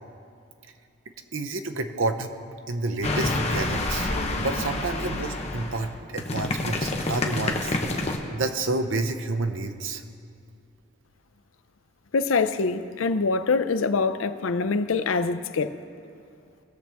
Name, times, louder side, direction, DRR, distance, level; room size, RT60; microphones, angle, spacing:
voice 1, 1.3-2.3 2.7-4.1 4.4-7.8 8.3-10.0, right 3 dB, 80° right, 7 dB, 0.8 m, -29 dB
sound 1, 3.0-8.2, left 2 dB, 35° left, 0.9 m, -28 dB
voice 2, 12.1-15.8, left 4 dB, 85° left, 11 dB, 0.5 m, -24 dB
20.0 x 7.4 x 3.5 m, 2.5 s
head